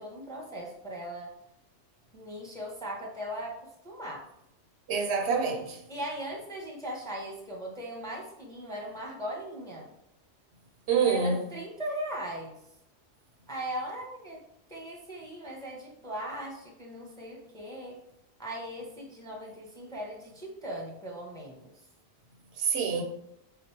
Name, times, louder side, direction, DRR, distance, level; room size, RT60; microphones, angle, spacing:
voice 1, 0.0-1.3 2.1-3.6 3.8-4.2 5.9-9.9 11.0-12.6 13.5-14.4 14.7-18.0 18.4-21.7, equal, 5° left, 0.8 m, -39 dB
voice 2, 4.9-5.8 10.9-11.4 22.6-23.0, right 5 dB, 70° right, 0.8 m, -26 dB
3.8 x 2.8 x 4.5 m
omnidirectional pair, 1.2 m